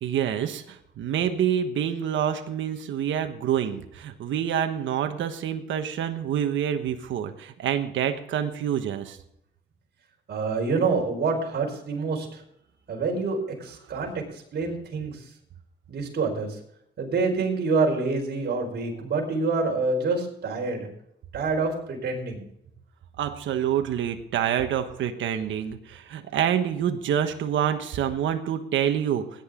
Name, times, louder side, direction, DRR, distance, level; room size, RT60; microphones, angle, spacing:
voice 1, 0.0-9.2 23.2-29.2, right 9 dB, 75° right, 7 dB, 1.3 m, -27 dB
voice 2, 10.3-12.4 12.9-14.2 14.5-15.2 15.9-16.6 17.0-20.9 21.3-22.4, right 4 dB, 55° right, 1 dB, 4.7 m, -27 dB
16.5 x 10.0 x 3.8 m, 0.75 s
cardioid pair, 90°, 20 cm